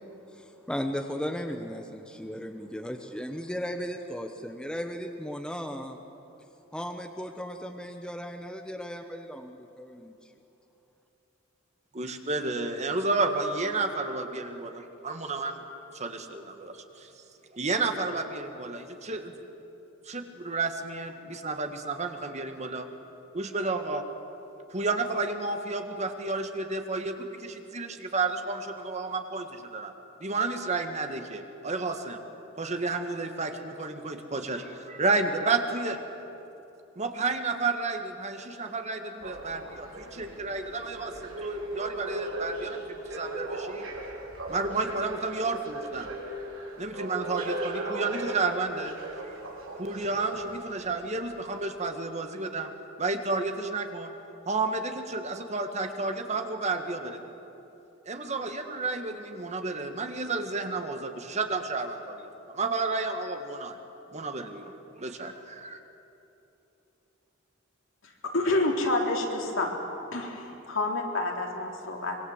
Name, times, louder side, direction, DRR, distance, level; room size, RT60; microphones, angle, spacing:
voice 1, 0.3-6.0 6.7-10.1, equal, 5° left, 4 dB, 1.1 m, -36 dB
voice 2, 11.9-15.6 15.9-17.1 17.5-19.4 20.0-22.9 23.3-24.1 24.7-29.9 30.2-32.2 32.6-36.0 37.0-43.9 44.5-46.1 46.8-49.0 49.2-49.3 49.8-52.7 53.0-54.1 54.5-57.2 58.1-63.8 64.1-64.7 65.0-65.8, right 3 dB, 35° right, 6 dB, 1.8 m, -31 dB
sound 1, 39.2-50.8 51.4-51.5, right 2 dB, 80° right, 4.8 m, -37 dB
voice 3, 68.0-69.7 70.1-72.2, left 2 dB, 70° left, 0 dB, 4.0 m, -28 dB
25.0 x 23.5 x 8.2 m, 3.0 s
head